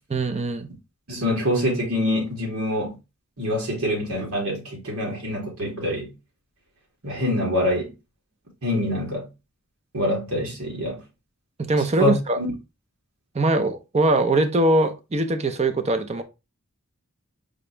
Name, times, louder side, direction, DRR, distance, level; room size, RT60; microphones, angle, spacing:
voice 1, 0.1-0.7 11.6-12.4 13.3-16.2, right 2 dB, 30° right, 0.6 m, -22 dB
voice 2, 1.1-2.9 3.4-6.1 7.0-7.9 8.6-9.3 9.9-11.0 12.0-12.5, left 1 dB, 90° right, 2.4 m, -25 dB
5.1 x 2.9 x 3.3 m
head